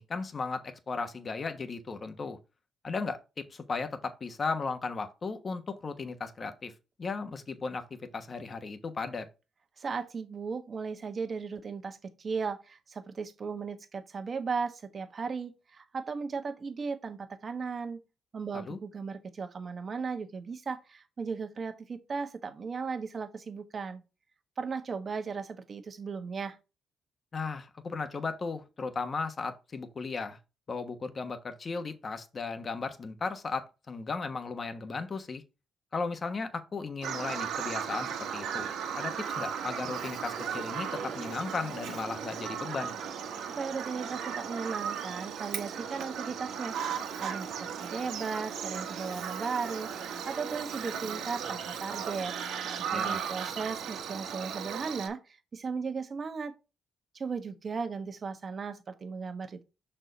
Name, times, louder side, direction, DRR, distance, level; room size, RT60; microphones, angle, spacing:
voice 1, 0.0-2.4 2.8-6.7 7.0-9.3 18.5-18.8 27.3-30.4 30.7-35.4 35.9-38.7 38.9-42.9 52.9-53.2, left 4 dB, 40° left, 1.2 m, -36 dB
voice 2, 9.8-18.0 18.3-24.0 24.6-26.6 43.4-52.3 52.8-56.5 57.1-59.6, right 5 dB, 40° right, 1.2 m, -36 dB
Bird vocalization bird call bird song, 37.0-55.1, right 7 dB, 80° right, 1.3 m, -36 dB
6.2 x 4.4 x 4.0 m
cardioid pair, 90°, 0 cm